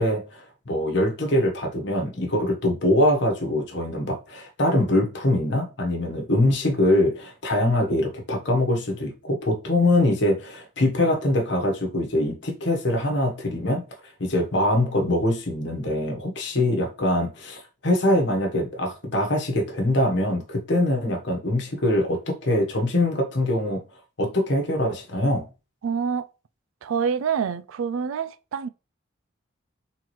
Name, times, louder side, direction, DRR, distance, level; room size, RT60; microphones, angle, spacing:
voice 1, 0.0-13.8 14.2-23.8 24.2-25.5, left 1 dB, 60° left, 1.1 m, -23 dB
voice 2, 25.8-26.3 26.8-28.7, right 6 dB, 85° right, 0.4 m, -26 dB
4.3 x 3.8 x 3.1 m
head